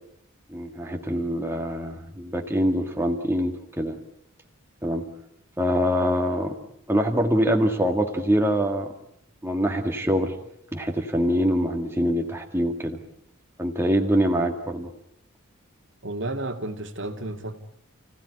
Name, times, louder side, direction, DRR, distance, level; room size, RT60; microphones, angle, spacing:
voice 1, 0.5-4.0 4.8-5.1 5.6-6.6 6.9-8.9 9.4-10.3 10.7-13.0 13.6-14.9, equal, 10° right, 2 dB, 2.0 m, -24 dB
voice 2, 16.0-17.6, right 2 dB, 55° right, 6 dB, 2.4 m, -32 dB
30.0 x 17.0 x 9.9 m, 0.76 s
head